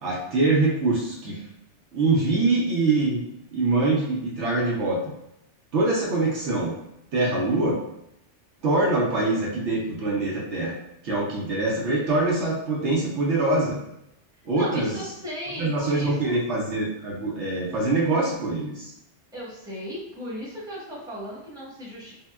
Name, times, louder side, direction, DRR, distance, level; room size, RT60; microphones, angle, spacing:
voice 1, 0.0-1.4 1.9-3.2 3.5-5.0 5.7-6.7 7.1-7.8 8.6-10.7 11.0-13.8 14.4-15.0 15.6-18.9, right 2 dB, 70° right, -4 dB, 0.9 m, -24 dB
voice 2, 14.5-16.4 19.3-22.1, equal, 5° right, -9 dB, 1.0 m, -36 dB
3.5 x 2.2 x 2.2 m, 0.81 s
omnidirectional pair, 1.2 m